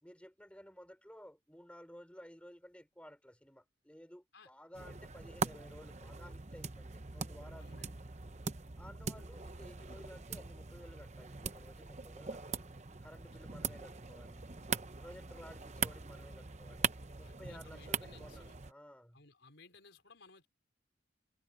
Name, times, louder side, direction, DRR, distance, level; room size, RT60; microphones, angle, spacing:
voice 1, 0.0-7.7 8.8-12.7 13.0-14.4 15.0-19.2, equal, 5° left, 4.2 m, -55 dB
sound 1, 4.7-18.7, right 5 dB, 35° right, 0.9 m, -41 dB
voice 2, 7.6-8.0 13.4-13.6 15.1-15.3 17.2-18.6 19.1-20.5, left 4 dB, 65° left, 4.7 m, -60 dB
head